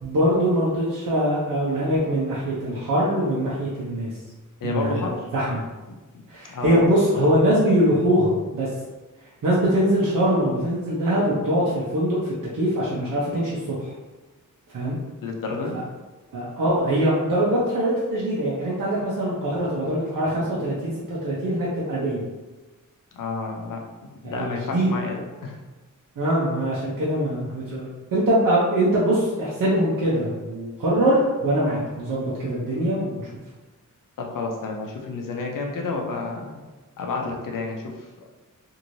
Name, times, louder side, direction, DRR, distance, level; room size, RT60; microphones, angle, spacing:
voice 1, 0.0-4.1 4.6-5.1 5.3-5.6 6.3-8.7 9.4-13.8 14.7-15.0 16.3-22.2 24.2-25.0 26.2-33.2, right 1 dB, 75° right, -7 dB, 0.7 m, -23 dB
voice 2, 4.6-5.3 6.5-6.9 15.2-15.8 23.1-23.8 24.1-25.6 34.2-36.5 37.0-37.9, left 3 dB, 80° left, 1 dB, 0.6 m, -30 dB
3.0 x 2.7 x 2.6 m, 1.2 s
wide cardioid pair, 125°, 32 cm